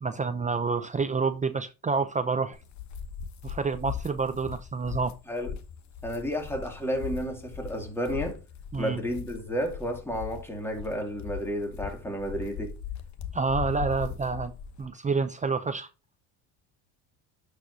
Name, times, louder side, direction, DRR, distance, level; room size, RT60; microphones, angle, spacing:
voice 1, 0.0-2.6 3.4-5.1 8.7-9.0 13.3-14.5 14.8-15.9, right 4 dB, 20° right, 0.5 m, -28 dB
sound 1, 2.5-14.9, left 7 dB, 45° left, 1.0 m, -39 dB
voice 2, 6.0-8.4 8.8-12.8, equal, 5° left, 2.5 m, -32 dB
11.0 x 5.0 x 2.8 m
supercardioid pair, 105°, 40 cm